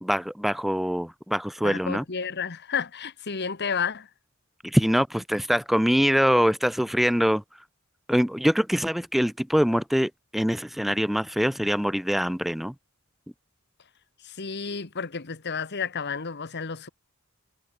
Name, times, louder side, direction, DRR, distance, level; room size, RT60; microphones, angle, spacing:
voice 1, 0.0-2.0 4.6-7.4 8.1-12.7, equal, ahead, 0.4 m, -24 dB
voice 2, 1.6-4.1 14.2-16.9, left 6 dB, 50° left, 1.3 m, -31 dB
head